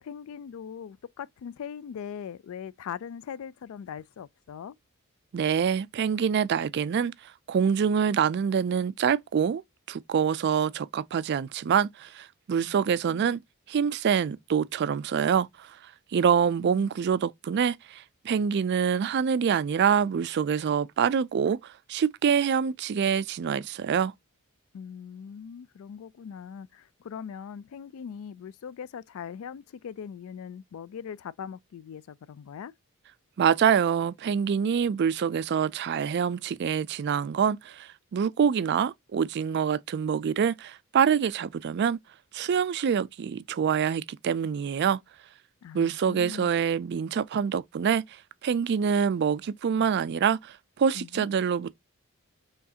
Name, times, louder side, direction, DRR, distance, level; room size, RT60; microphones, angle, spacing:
voice 1, 0.0-4.7 12.6-12.8 13.1-13.4 16.6-16.9 24.7-32.7 45.6-46.5 50.9-51.3, left 7 dB, 65° left, 0.3 m, -41 dB
voice 2, 5.3-9.6 9.9-13.4 13.7-15.8 16.1-24.1 33.4-42.0 42.3-45.0 45.7-51.7, right 7 dB, 50° right, 0.3 m, -26 dB
4.6 x 3.2 x 2.8 m
head